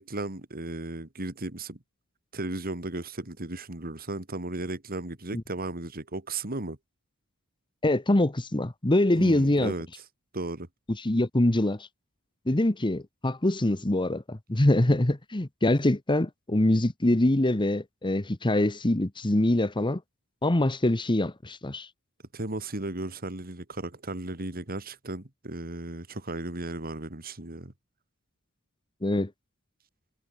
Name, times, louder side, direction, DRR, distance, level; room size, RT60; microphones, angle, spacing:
voice 1, 0.0-1.8 2.3-6.8 9.2-9.9 10.3-10.7 22.3-27.7, right 2 dB, 45° right, 2.6 m, -35 dB
voice 2, 7.8-9.7 11.0-11.9 12.5-20.0 20.4-21.9 29.0-29.3, left 1 dB, 20° left, 1.1 m, -24 dB
head